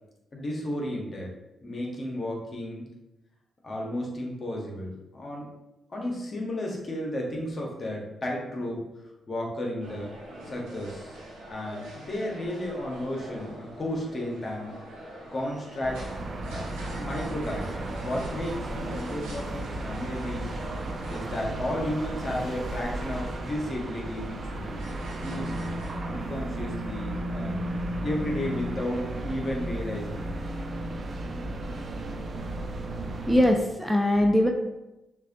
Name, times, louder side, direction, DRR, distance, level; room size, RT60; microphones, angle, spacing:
voice 1, 0.3-1.3 1.6-2.9 3.6-5.5 5.9-8.9 9.3-10.1 10.5-11.2 11.5-14.7 15.3-16.0 16.4-16.7 17.0-20.5 21.1-24.9 25.2-25.5 26.0-27.6 28.0-30.3, left 1 dB, 45° left, -1 dB, 1.3 m, -33 dB
sound 1, 9.8-25.9, right 1 dB, 85° right, 1.4 m, -44 dB
sound 2, 15.8-33.5, right 1 dB, 50° right, 0.6 m, -34 dB
voice 2, 33.3-34.5, left 1 dB, 5° right, 2 dB, 0.6 m, -21 dB
6.2 x 2.6 x 2.7 m, 0.96 s
hypercardioid pair, 40°, 0 cm